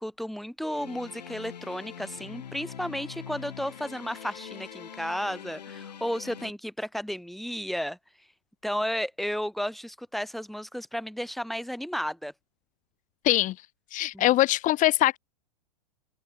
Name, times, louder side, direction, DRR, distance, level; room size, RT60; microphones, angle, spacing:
voice 1, 0.0-8.0 8.6-12.3 14.1-14.3, equal, ahead, 6.8 m, -33 dB
sound 1, 0.6-6.5, left 8 dB, 80° left, 7.8 m, -43 dB
voice 2, 13.9-15.2, left 16 dB, 35° left, 4.0 m, -22 dB
hypercardioid pair, 105°, 21 cm